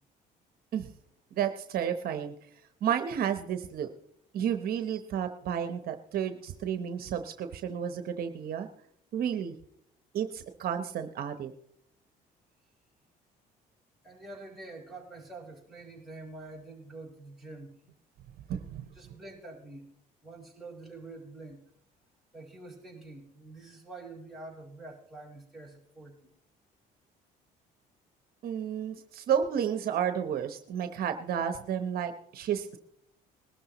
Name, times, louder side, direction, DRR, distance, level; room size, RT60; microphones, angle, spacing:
voice 1, 1.3-2.3 2.8-3.9 4.3-8.7 9.1-9.5 10.1-11.5 18.5-18.8 28.4-32.8, right 8 dB, 60° right, 8 dB, 0.9 m, -31 dB
voice 2, 14.0-17.8 18.9-19.9 20.2-21.6 22.3-26.3, right 2 dB, ahead, -3 dB, 5.1 m, -46 dB
21.0 x 12.5 x 3.0 m, 0.71 s
cardioid pair, 110°, 17 cm